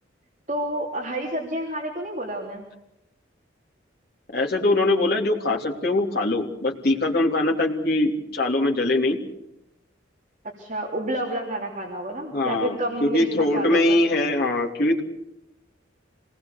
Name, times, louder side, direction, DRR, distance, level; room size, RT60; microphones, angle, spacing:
voice 1, 0.5-2.6 10.6-14.0, right 1 dB, 40° right, -2 dB, 3.3 m, -30 dB
voice 2, 4.3-9.2 12.3-15.0, left 2 dB, 50° left, 0 dB, 3.3 m, -22 dB
27.0 x 20.0 x 6.8 m, 0.85 s
head